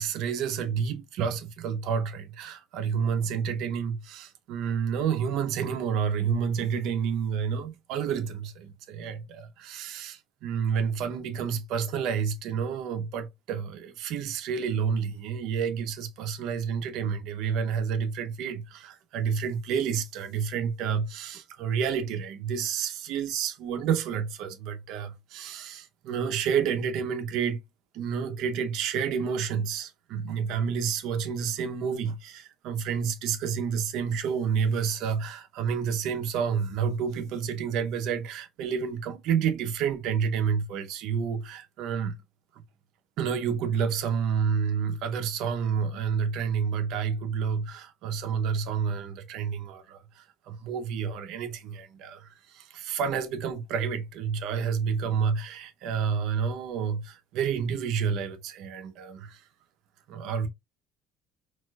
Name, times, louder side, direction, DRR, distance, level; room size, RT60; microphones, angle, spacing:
voice 1, 0.0-27.6 27.9-42.2 43.2-59.4 60.1-60.5, right 7 dB, 70° right, 0.7 m, -29 dB
4.1 x 2.4 x 2.3 m
cardioid pair, 130°, 0 cm